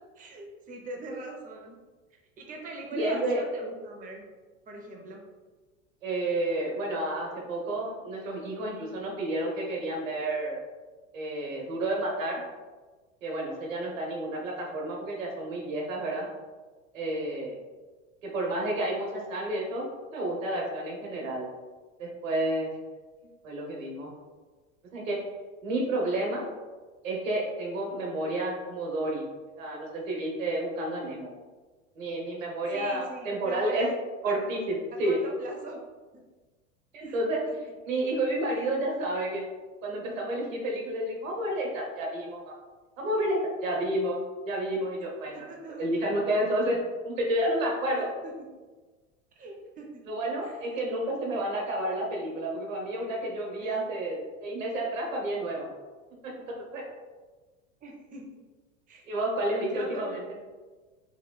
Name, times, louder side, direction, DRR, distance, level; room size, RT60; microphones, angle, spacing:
voice 1, 0.2-1.8 2.1-4.2 4.7-5.2 32.7-33.9 34.3-34.4 35.0-35.8 36.1-36.2 37.0-37.1 45.3-45.9 48.0-48.5 49.3-50.0 50.4-50.5 53.6-53.8 57.8-58.4 58.9-59.0 59.6-60.2, right 2 dB, 20° right, 1 dB, 0.7 m, -41 dB
voice 2, 2.9-3.4 6.0-10.6 11.1-12.4 13.2-16.3 16.9-17.6 18.2-19.8 20.1-21.5 22.0-22.7 23.4-24.1 24.9-25.3 25.6-26.4 27.0-29.2 29.6-31.3 32.0-33.9 34.2-35.2 36.9-37.5 37.8-39.4 39.8-42.5 43.0-44.2 44.4-45.5 45.8-46.8 47.0-48.1 50.1-55.7 56.2-56.8 59.1-60.2, right 1 dB, 80° right, -1 dB, 1.1 m, -30 dB
4.2 x 3.2 x 2.2 m, 1.3 s
hypercardioid pair, 85°, 39 cm